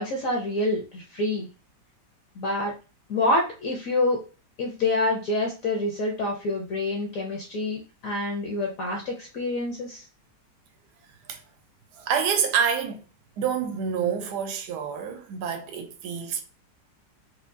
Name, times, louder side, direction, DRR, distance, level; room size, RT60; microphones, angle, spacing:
voice 1, 0.0-1.5 2.4-2.7 3.1-4.2 4.6-10.0, left 2 dB, 60° left, 0.9 m, -27 dB
voice 2, 12.0-13.0 13.4-16.4, right 7 dB, 75° right, 1.1 m, -27 dB
4.5 x 2.3 x 2.6 m
omnidirectional pair, 2.0 m